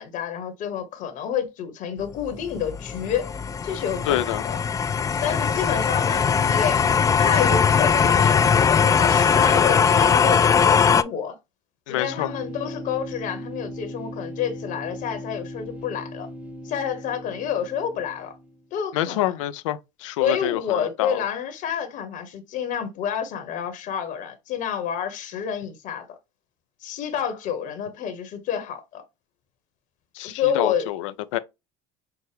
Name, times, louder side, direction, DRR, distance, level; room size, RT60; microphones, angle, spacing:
voice 1, 0.0-3.3 3.6-4.6 5.2-11.4 11.9-16.3 16.6-18.3 18.7-19.3 20.2-26.0 26.8-29.0 30.2-30.9, left 8 dB, 55° left, 1.1 m, -29 dB
sound 1, 2.2-11.0, left 6 dB, 20° left, 0.4 m, -20 dB
voice 2, 4.1-4.4 11.9-12.3 18.9-21.2 30.2-31.4, left 14 dB, 75° left, 0.5 m, -27 dB
sound 2, 12.0-18.6, equal, 10° right, 1.1 m, -38 dB
5.9 x 2.1 x 3.3 m
hypercardioid pair, 70°, 16 cm